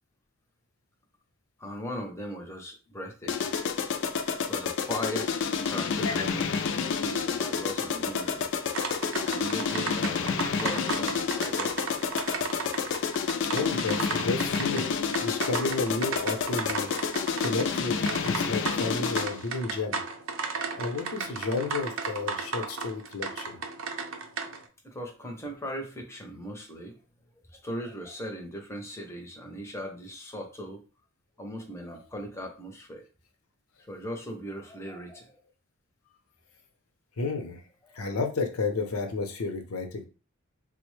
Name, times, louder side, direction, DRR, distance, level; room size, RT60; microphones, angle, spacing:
voice 1, 1.6-3.5 4.4-6.6 7.0-8.5 9.2-11.7 23.8-23.9 24.8-27.0 27.5-30.8 31.4-33.0 33.8-35.4 37.9-38.2, equal, 10° left, 2 dB, 0.6 m, -39 dB
sound 1, 3.3-19.5, left 6 dB, 55° left, 0.3 m, -29 dB
sound 2, 8.7-24.7, right 4 dB, 65° right, 0.5 m, -35 dB
voice 2, 13.5-14.9 15.2-20.0 20.8-23.6 37.2-37.6 37.9-40.0, left 3 dB, 80° left, 5 dB, 0.7 m, -32 dB
4.0 x 2.1 x 3.1 m, 0.34 s
head